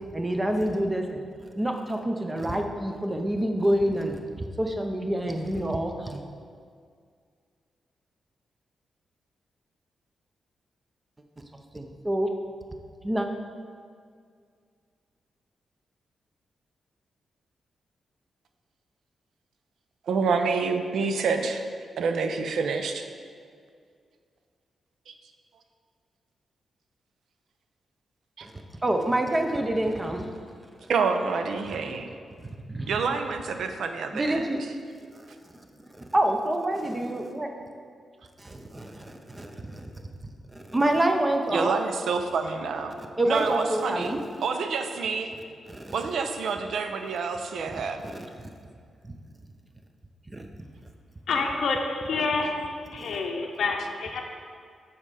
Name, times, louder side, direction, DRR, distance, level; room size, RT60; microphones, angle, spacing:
voice 1, 0.1-1.2 1.6-6.2 11.7-12.3 13.0-13.3 28.4-28.5 28.8-30.3 32.7-33.0 34.1-34.6 35.5-37.5 38.4-39.9 40.5-41.7 43.2-44.2 45.7-46.0 48.0-48.3 49.0-49.1 50.3-50.5 52.9-53.2, right 1 dB, 20° right, 4 dB, 0.6 m, -27 dB
voice 2, 20.1-21.7 22.0-23.0 25.1-25.2 28.4-28.5 30.9-32.1 32.9-34.5 41.5-43.0 43.3-44.1 44.4-45.3 45.9-48.0, right 5 dB, 80° right, 7 dB, 0.5 m, -27 dB
voice 3, 51.3-52.5 52.9-54.2, left 4 dB, 80° left, 2 dB, 0.6 m, -27 dB
7.2 x 4.3 x 4.8 m, 2.1 s
cardioid pair, 80°, 0 cm